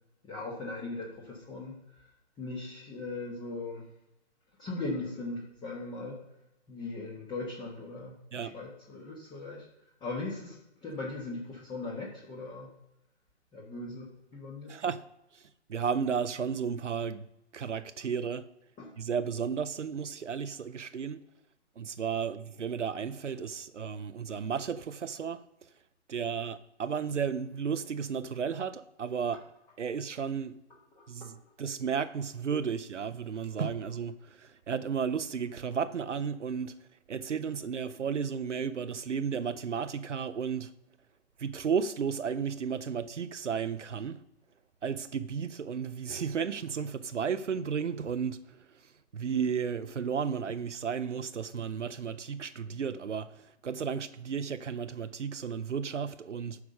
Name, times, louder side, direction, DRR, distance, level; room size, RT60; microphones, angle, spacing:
voice 1, 0.2-2.1 2.4-3.8 4.6-6.2 6.7-9.7 10.0-12.7 13.5-14.7 18.8-18.9 31.0-31.3, left 2 dB, 10° left, 1.3 m, -39 dB
voice 2, 14.7-15.0 15.3-15.4 15.7-17.3 17.5-18.5 19.0-21.2 21.8-25.4 26.1-29.4 29.8-30.5 31.1-36.7 37.1-40.7 41.4-44.2 44.8-48.4 49.1-56.6, right 6 dB, 85° right, 0.7 m, -33 dB
9.7 x 5.9 x 6.6 m
figure-of-eight pair, 135°, 35 cm